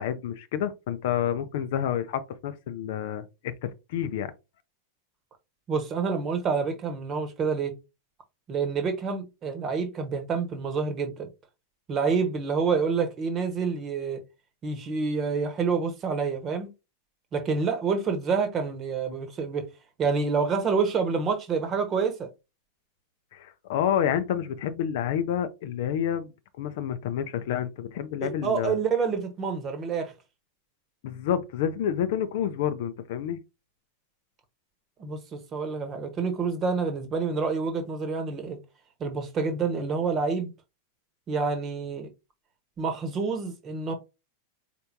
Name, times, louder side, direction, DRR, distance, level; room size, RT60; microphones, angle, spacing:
voice 1, 0.0-4.3 23.3-26.3 26.6-28.8 31.0-33.4, left 9 dB, 55° left, 0.5 m, -29 dB
voice 2, 5.7-7.7 8.5-11.3 11.9-14.2 14.6-16.7 17.3-19.7 20.0-22.3 28.2-30.1 35.0-38.6 39.0-40.5 41.3-42.1 42.8-43.9, right 5 dB, 30° right, 1.1 m, -28 dB
4.4 x 3.4 x 2.7 m
figure-of-eight pair, 90°, 0 cm